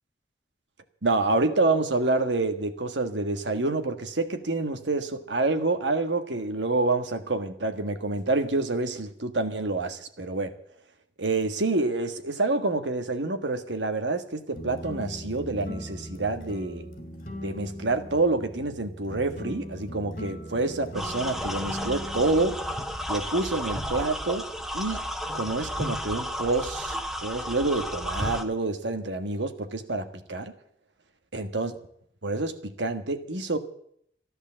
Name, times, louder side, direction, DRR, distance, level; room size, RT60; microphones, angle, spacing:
voice 1, 1.0-10.5 11.2-16.9 17.4-22.6 23.1-24.5 24.7-25.0 25.3-30.5 31.3-31.7 32.2-33.6, right 2 dB, 90° right, 8 dB, 1.5 m, -27 dB
sound 1, 14.5-23.8, equal, 45° left, 2.5 m, -40 dB
sound 2, 20.9-28.4, equal, ahead, 1.1 m, -33 dB
13.5 x 11.5 x 7.5 m, 0.67 s
head